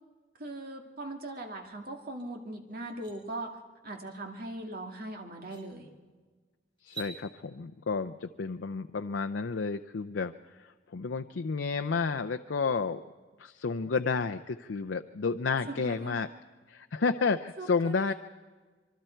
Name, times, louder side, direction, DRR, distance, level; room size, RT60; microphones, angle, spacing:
voice 1, 0.4-3.5 3.8-5.9 15.7-16.3 17.6-18.1, right 2 dB, 55° right, 3 dB, 2.2 m, -40 dB
sound 1, 2.2-2.3 2.7-3.1 4.8-4.9 5.4-5.7 6.8-7.1, right 6 dB, 30° right, 4.0 m, -45 dB
voice 2, 6.8-10.3 10.6-13.0 13.4-16.3 16.7-18.1, left 4 dB, 85° left, 9 dB, 0.6 m, -31 dB
25.5 x 23.5 x 4.5 m, 1.4 s
head